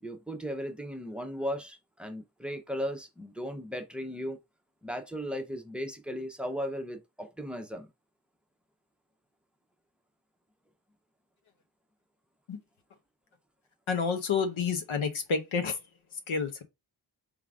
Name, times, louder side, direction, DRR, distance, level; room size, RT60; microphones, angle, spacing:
voice 1, 0.0-4.4 4.8-7.9, equal, ahead, 0.7 m, -36 dB
voice 2, 13.9-15.8 16.3-16.6, left 5 dB, 90° left, 1.0 m, -29 dB
3.7 x 3.3 x 3.6 m
wide cardioid pair, 125°, 46 cm